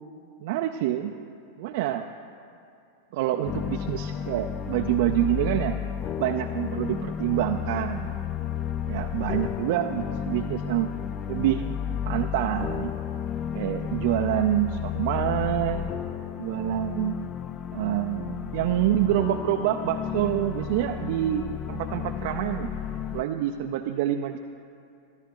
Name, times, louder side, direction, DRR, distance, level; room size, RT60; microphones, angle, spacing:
voice 1, 0.4-1.1 1.6-2.1 3.1-5.8 6.2-8.1 8.9-10.9 11.3-11.6 12.1-12.9 13.5-15.9 16.4-17.2 17.7-22.7 23.1-24.4, right 12 dB, 60° right, 4 dB, 0.4 m, -27 dB
sound 1, 3.4-23.2, left 9 dB, 35° left, 0.4 m, -32 dB
13.0 x 12.0 x 3.7 m, 2.6 s
hypercardioid pair, 110°, 0 cm